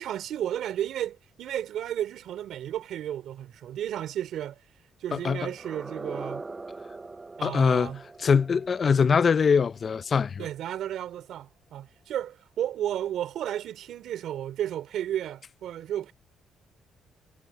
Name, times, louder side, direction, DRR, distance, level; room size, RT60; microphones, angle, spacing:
voice 1, 0.0-4.6 5.0-6.4 7.4-8.0 10.4-16.1, right 11 dB, 75° right, 4.4 m, -33 dB
sound 1, 5.5-10.4, right 3 dB, 25° right, 7.5 m, -42 dB
voice 2, 7.4-7.9 8.2-10.5, left 6 dB, 45° left, 0.5 m, -22 dB
cardioid pair, 90°, 0 cm